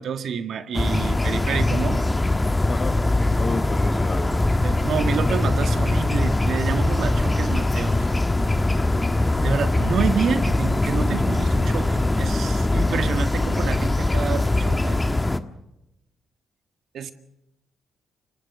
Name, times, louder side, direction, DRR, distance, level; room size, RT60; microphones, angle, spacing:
voice 1, 0.0-2.0 4.6-8.1 9.4-15.0 16.9-17.1, right 7 dB, 70° right, 8 dB, 1.7 m, -28 dB
sound 1, 0.7-15.4, left 2 dB, 20° left, 1.5 m, -22 dB
voice 2, 3.3-4.3, left 4 dB, 45° left, 8 dB, 1.9 m, -31 dB
29.5 x 17.0 x 6.2 m, 0.91 s
supercardioid pair, 65°, 0 cm